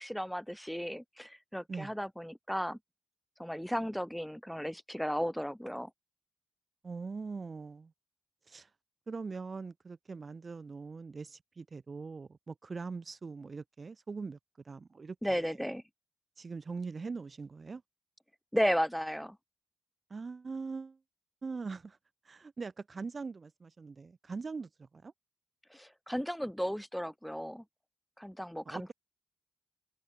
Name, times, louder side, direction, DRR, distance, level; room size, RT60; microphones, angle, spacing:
voice 1, 0.0-2.8 3.4-5.9 15.2-15.8 18.5-19.4 25.7-27.6 28.2-28.9, equal, ahead, 2.1 m, -34 dB
voice 2, 6.8-7.9 8.5-8.7 9.1-14.4 14.6-15.6 16.4-17.8 20.1-21.0 21.4-22.0 22.2-25.1 28.6-28.9, right 4 dB, 45° right, 1.0 m, -42 dB
cardioid pair, 60°, 0 cm